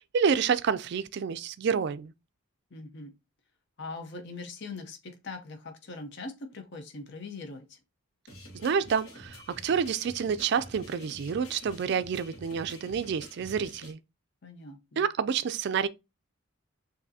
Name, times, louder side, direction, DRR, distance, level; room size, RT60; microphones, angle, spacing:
voice 1, 0.0-2.1 8.5-14.0 15.0-15.9, right 6 dB, 50° right, 0.3 m, -28 dB
voice 2, 2.7-3.1 3.8-7.8 14.4-15.0, left 3 dB, 55° left, 0.7 m, -41 dB
sound 1, 8.3-13.9, equal, 75° left, 1.4 m, -48 dB
6.3 x 2.7 x 2.7 m
head